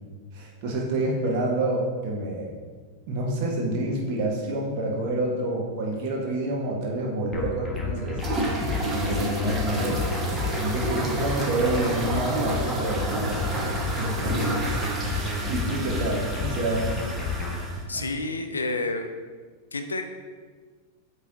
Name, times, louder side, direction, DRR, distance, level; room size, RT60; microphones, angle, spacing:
voice 1, 0.3-2.5 3.1-8.2 8.8-10.1 10.6-14.6 15.1-15.2 15.5-16.8 17.9-18.0, right 1 dB, 45° right, -2 dB, 1.2 m, -28 dB
sound 1, 7.3-17.6, left 3 dB, 10° left, 1.3 m, -30 dB
sound 2, 8.2-17.8, right 2 dB, 20° right, 1.1 m, -31 dB
voice 2, 17.9-19.1 19.7-20.1, left 2 dB, 75° left, 7 dB, 0.4 m, -29 dB
8.5 x 3.2 x 3.8 m, 1.5 s
figure-of-eight pair, 90°, 0 cm